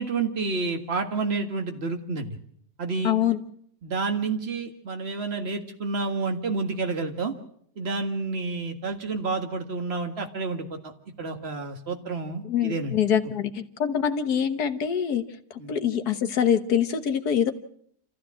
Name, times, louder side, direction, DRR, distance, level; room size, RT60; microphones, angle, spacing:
voice 1, 0.0-2.4 2.8-3.2 3.8-7.3 7.8-10.9 11.2-13.0 15.6-15.7, right 4 dB, 40° right, 5 dB, 2.0 m, -29 dB
voice 2, 3.0-3.4 12.4-15.2 15.7-17.5, left 8 dB, 75° left, 9 dB, 1.8 m, -24 dB
27.5 x 14.5 x 7.6 m, 0.68 s
omnidirectional pair, 1.7 m